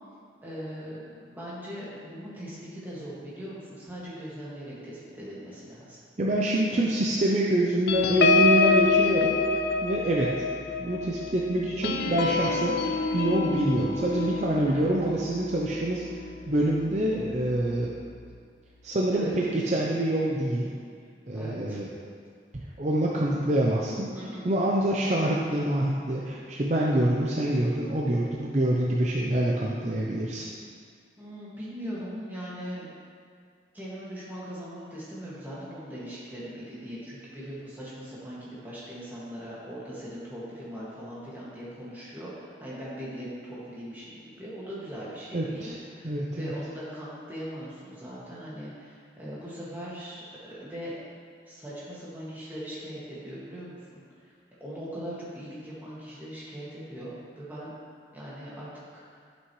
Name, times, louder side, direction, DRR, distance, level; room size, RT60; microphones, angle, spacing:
voice 1, 0.4-6.0 14.7-14.9 19.1-19.3 21.3-21.8 24.1-24.4 31.2-32.9 33.7-51.0 51.5-54.0 54.6-57.7 58.1-58.7 58.9-59.2, equal, 10° right, -9 dB, 1.9 m, -40 dB
voice 2, 6.2-9.3 9.8-10.3 10.8-12.8 13.1-16.0 16.5-17.9 18.8-20.7 21.3-21.9 22.8-30.5 45.3-45.8 46.0-46.5, right 1 dB, 40° right, -3 dB, 0.6 m, -26 dB
sound 1, 7.9-16.8 17.2-17.4 17.7-18.0, left 4 dB, 65° left, 0.5 m, -26 dB
11.0 x 6.2 x 3.1 m, 2.1 s
head